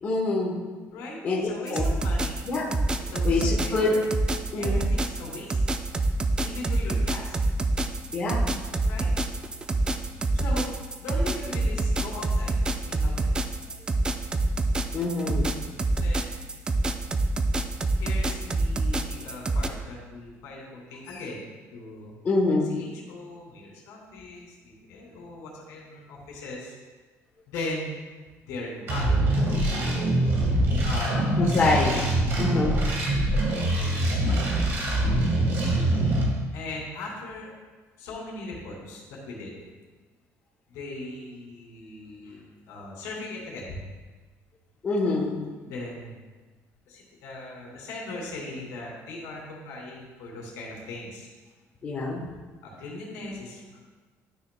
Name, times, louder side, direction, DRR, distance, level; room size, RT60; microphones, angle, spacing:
voice 1, 0.0-0.6 1.2-1.8 2.5-2.7 3.2-4.0 4.5-4.8 8.1-8.4 14.9-15.6 22.2-22.7 31.4-32.0 32.4-32.8 44.8-45.4 51.8-52.2, left 3 dB, 25° left, -4 dB, 1.0 m, -25 dB
voice 2, 1.4-2.4 3.1-4.0 4.6-5.6 6.4-7.4 8.8-9.1 10.3-10.7 11.0-12.6 12.9-13.3 16.0-16.4 18.0-21.4 21.7-22.1 22.7-26.8 27.5-27.9 28.4-29.1 30.8-32.2 33.2-33.5 33.8-34.6 36.5-37.5 38.0-39.6 40.7-43.8 45.6-46.2 46.9-51.3 52.6-53.8, left 2 dB, 85° left, -2 dB, 2.4 m, -39 dB
sound 1, 1.7-19.7, right 2 dB, 15° right, 0.3 m, -26 dB
sound 2, 28.9-36.2, right 1 dB, 45° right, 1.5 m, -24 dB
12.0 x 6.3 x 2.2 m, 1.3 s
cardioid pair, 175°, 6 cm